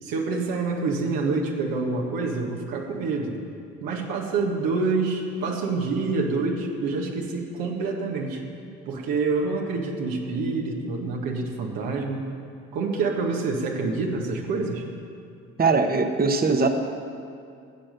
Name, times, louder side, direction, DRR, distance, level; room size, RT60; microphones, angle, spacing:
voice 1, 0.0-3.4 3.8-8.4 8.9-12.3 12.7-14.8, right 3 dB, 80° right, 0 dB, 1.7 m, -27 dB
voice 2, 15.6-16.7, right 4 dB, 25° right, 6 dB, 1.0 m, -21 dB
12.5 x 7.6 x 6.7 m, 2.4 s
supercardioid pair, 55°, 34 cm